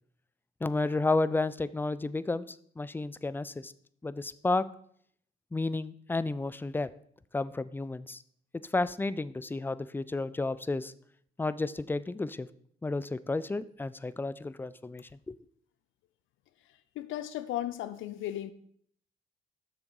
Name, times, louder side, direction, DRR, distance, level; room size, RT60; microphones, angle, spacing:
voice 1, 0.6-3.7 4.0-4.7 5.5-6.9 7.3-8.2 8.5-10.9 11.4-12.5 12.8-15.3, left 3 dB, 10° left, 16 dB, 0.3 m, -32 dB
voice 2, 17.0-18.5, left 12 dB, 80° left, 13 dB, 0.5 m, -35 dB
7.3 x 6.5 x 4.6 m, 0.63 s
cardioid pair, 90°, 20 cm